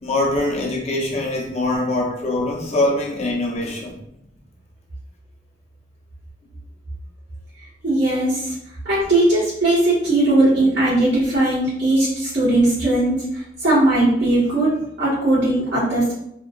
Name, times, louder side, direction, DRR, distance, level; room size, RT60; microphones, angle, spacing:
voice 1, 0.0-4.0, left 2 dB, 40° left, -2 dB, 0.7 m, -23 dB
voice 2, 7.8-8.5 8.8-14.7 15.0-16.1, right 1 dB, 75° right, -12 dB, 1.4 m, -18 dB
3.0 x 2.7 x 2.4 m, 0.78 s
head